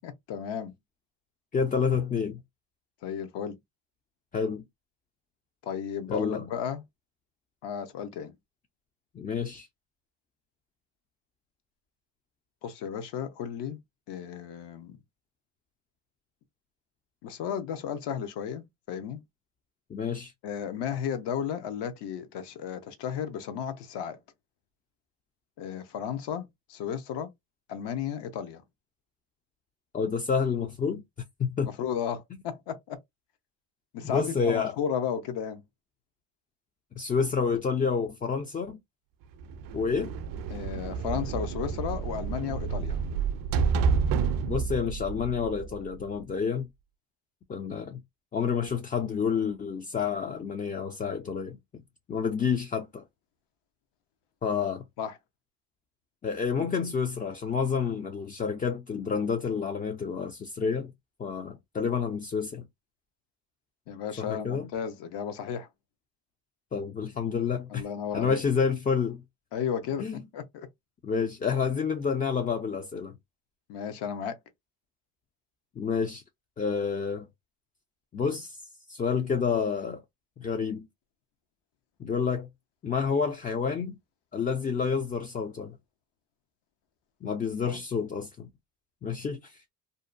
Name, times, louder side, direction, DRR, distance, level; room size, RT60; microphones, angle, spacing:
voice 1, 0.0-0.7 3.0-3.6 5.6-6.8 7.6-8.3 12.6-13.8 14.1-15.0 17.2-19.2 20.4-24.2 25.6-27.3 27.7-28.6 31.6-33.0 33.9-35.6 40.5-43.0 55.0-55.2 63.9-65.7 67.7-68.4 69.5-70.1 70.3-70.7 73.7-74.4 87.6-87.8, left 8 dB, 65° left, 0.8 m, -34 dB
voice 2, 1.5-2.4 4.3-4.7 6.1-6.5 9.1-9.7 19.9-20.3 29.9-31.0 31.4-31.7 34.0-34.8 37.0-38.8 39.7-40.1 44.5-46.7 47.5-48.0 48.3-51.6 52.1-53.0 54.4-54.8 56.2-60.9 61.2-62.6 64.2-64.7 66.7-67.9 68.1-69.2 70.0-70.1 71.0-73.2 75.8-76.2 76.6-77.3 78.1-78.6 78.9-80.0 80.4-80.9 82.0-82.5 82.8-84.0 84.3-85.8 87.2-88.5 89.0-89.6, left 6 dB, 20° left, 0.3 m, -29 dB
sound 1, 39.4-46.2, right 6 dB, 50° right, 0.5 m, -29 dB
2.7 x 2.1 x 2.4 m
supercardioid pair, 75°, 44 cm